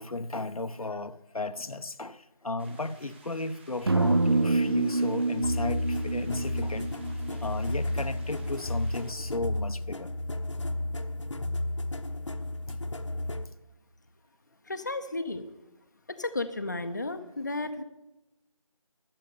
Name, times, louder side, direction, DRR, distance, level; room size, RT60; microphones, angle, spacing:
voice 1, 0.0-6.9 7.3-10.1, left 2 dB, 80° left, 0.8 m, -35 dB
sound 1, 2.6-9.1, right 2 dB, 20° right, 1.4 m, -56 dB
sound 2, 3.9-8.0, right 2 dB, 45° right, 0.5 m, -27 dB
sound 3, 5.4-13.5, left 1 dB, 55° left, 1.0 m, -32 dB
voice 2, 14.7-15.5 16.1-17.8, left 2 dB, 30° left, 0.7 m, -33 dB
12.0 x 6.7 x 9.4 m
figure-of-eight pair, 170°, 18 cm